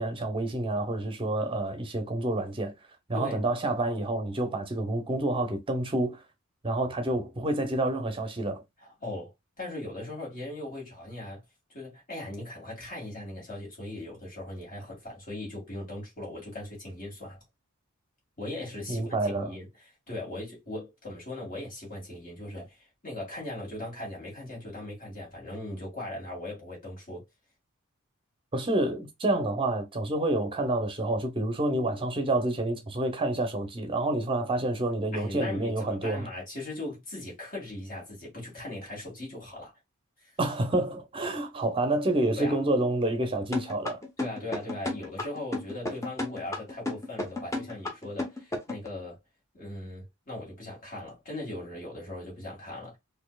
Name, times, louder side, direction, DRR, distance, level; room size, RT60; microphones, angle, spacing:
voice 1, 0.0-2.7 3.1-6.2 6.6-8.6 18.9-19.5 28.5-36.3 40.4-44.0, right 2 dB, 25° right, 0.7 m, -28 dB
voice 2, 8.8-11.4 11.7-17.4 18.4-19.7 20.1-27.2 35.1-39.7 40.2-40.3 42.4-42.6 44.2-49.2 49.5-53.0, left 1 dB, 40° left, 2.1 m, -39 dB
sound 1, 43.5-48.9, left 2 dB, 15° left, 0.8 m, -33 dB
4.3 x 2.8 x 2.3 m
head